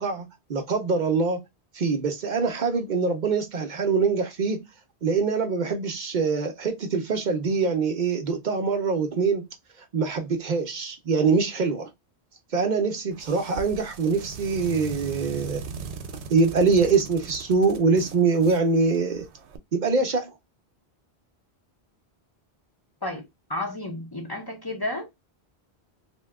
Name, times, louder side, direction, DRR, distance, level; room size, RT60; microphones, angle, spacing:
voice 1, 0.0-1.4 1.7-4.6 5.0-9.5 9.9-11.9 12.5-15.6 16.3-19.2 19.7-20.3, right 4 dB, 55° right, 0.6 m, -24 dB
sound 1, 13.1-19.6, right 6 dB, 90° right, 0.9 m, -39 dB
voice 2, 23.5-25.1, left 1 dB, 30° left, 0.5 m, -31 dB
2.8 x 2.2 x 3.4 m
omnidirectional pair, 1.1 m